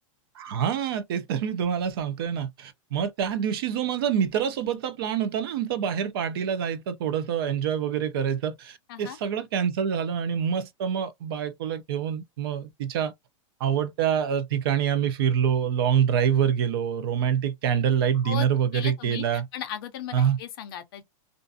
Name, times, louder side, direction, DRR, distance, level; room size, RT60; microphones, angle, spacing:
voice 1, 0.4-13.1 13.6-19.5 20.1-20.4, right 8 dB, 45° right, 0.4 m, -26 dB
voice 2, 18.7-19.2 19.5-21.0, left 10 dB, 45° left, 0.5 m, -36 dB
2.5 x 2.3 x 2.5 m
supercardioid pair, 175°, 17 cm